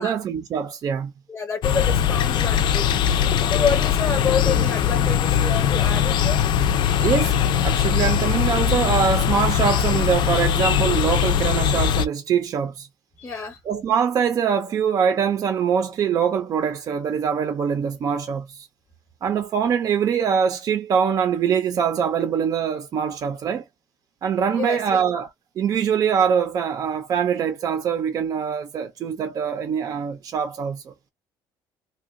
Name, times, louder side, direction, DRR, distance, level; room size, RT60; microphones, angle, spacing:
voice 1, 0.0-1.1 7.0-7.4 7.6-12.9 13.7-18.7 19.2-23.6 24.2-25.3 25.6-30.9, right 7 dB, 40° right, 0.5 m, -23 dB
voice 2, 1.3-2.9 3.5-6.4 13.2-13.6 24.5-25.0, left 5 dB, 15° left, 0.7 m, -28 dB
sound 1, 1.6-12.1, left 9 dB, 55° left, 0.5 m, -21 dB
2.8 x 2.2 x 2.5 m
cardioid pair, 140°, 9 cm